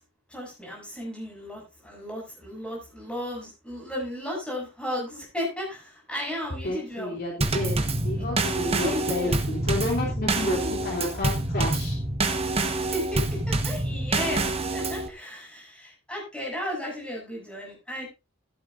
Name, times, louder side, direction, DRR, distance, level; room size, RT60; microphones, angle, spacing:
voice 1, 0.3-7.2 8.8-9.4 10.6-10.7 12.9-18.1, left 1 dB, 5° left, -2 dB, 7.3 m, -34 dB
voice 2, 6.6-12.0, left 1 dB, 45° left, -1 dB, 3.0 m, -30 dB
Drum kit / Snare drum / Bass drum, 7.4-15.1, right 2 dB, 25° right, 1.3 m, -27 dB
15.0 x 12.5 x 2.6 m, 0.26 s
head